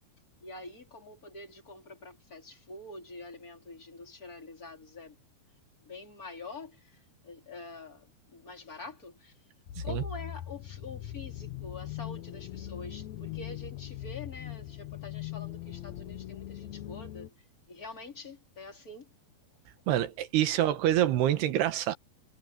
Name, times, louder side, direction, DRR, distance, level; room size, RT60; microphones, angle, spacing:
voice 1, 0.4-5.2 5.8-9.4 9.8-19.1, left 3 dB, 25° left, 3.5 m, -46 dB
sound 1, 9.7-17.3, left 13 dB, 85° left, 1.6 m, -40 dB
voice 2, 19.9-21.9, right 12 dB, 80° right, 3.5 m, -26 dB
omnidirectional pair, 4.7 m